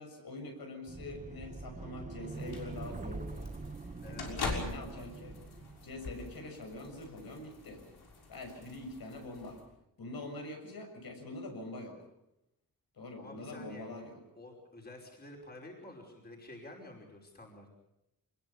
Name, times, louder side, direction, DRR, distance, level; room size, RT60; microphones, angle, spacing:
voice 1, 0.0-3.5 4.1-5.4 5.8-7.8 8.3-9.6 10.0-12.0 12.9-14.2, left 2 dB, 70° left, 3 dB, 7.0 m, -44 dB
sound 1, 0.9-6.1, right 3 dB, 20° right, 1.0 m, -44 dB
sound 2, 2.3-9.6, left 3 dB, 90° left, 6.4 m, -43 dB
voice 2, 4.0-4.4 10.2-10.3 13.1-13.9 14.4-17.7, left 1 dB, 25° left, 0 dB, 5.4 m, -50 dB
26.0 x 21.5 x 7.1 m, 0.85 s
wide cardioid pair, 170°, 37 cm